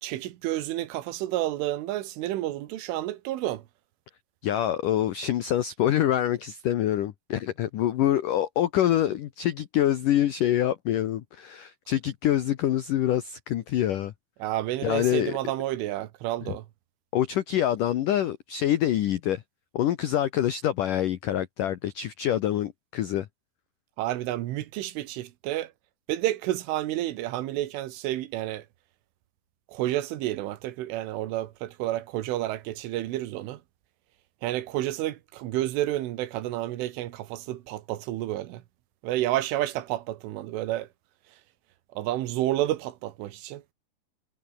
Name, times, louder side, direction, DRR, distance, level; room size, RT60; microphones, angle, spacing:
voice 1, 0.0-3.6 14.4-16.7 24.0-25.7 26.1-28.7 29.7-33.6 34.4-38.6 39.0-40.9 42.0-43.6, right 14 dB, 85° right, 4.0 m, -30 dB
voice 2, 4.4-14.1 14.8-15.3 17.1-19.4 19.7-23.3, left 12 dB, 80° left, 1.8 m, -25 dB
omnidirectional pair, 5.5 m